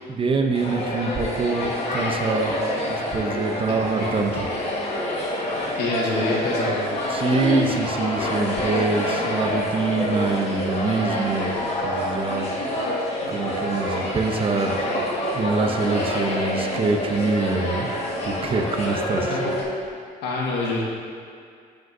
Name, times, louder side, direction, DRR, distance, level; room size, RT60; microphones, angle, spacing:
voice 1, 0.1-2.6 2.9-4.6 7.1-12.5 13.3-14.9 15.3-17.9 18.2-19.4, right 4 dB, 35° right, 4 dB, 0.6 m, -25 dB
sound 1, 0.5-19.6, left 1 dB, 35° left, 1.5 m, -27 dB
voice 2, 5.8-6.9 19.3-19.5 20.2-20.8, left 2 dB, 80° left, -3 dB, 1.5 m, -26 dB
11.5 x 5.2 x 2.7 m, 2.3 s
cardioid pair, 110°, 17 cm